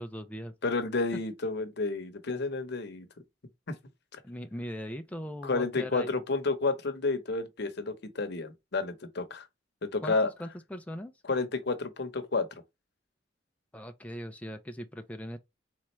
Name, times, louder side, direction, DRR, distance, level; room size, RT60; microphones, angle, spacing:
voice 1, 0.0-0.5 1.1-1.2 4.2-6.2 10.0-11.1 13.7-15.4, equal, 10° left, 0.4 m, -39 dB
voice 2, 0.6-3.1 5.4-9.5 9.8-10.3 11.3-12.5, left 3 dB, 60° left, 0.9 m, -30 dB
4.3 x 3.6 x 3.1 m
head